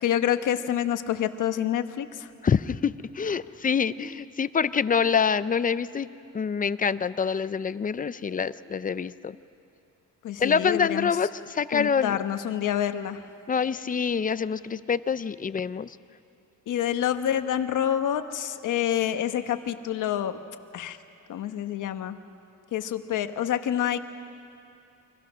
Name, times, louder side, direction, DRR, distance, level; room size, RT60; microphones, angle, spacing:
voice 1, 0.0-2.3 10.2-11.1 11.7-13.2 16.7-20.4 20.7-21.0 21.3-22.2 22.7-24.0, left 10 dB, 75° left, 9 dB, 1.1 m, -27 dB
voice 2, 2.4-6.1 6.3-9.3 10.4-12.2 13.5-16.0, left 6 dB, 25° left, 15 dB, 0.5 m, -26 dB
29.5 x 24.5 x 6.2 m, 2.7 s
cardioid pair, 140°, 31 cm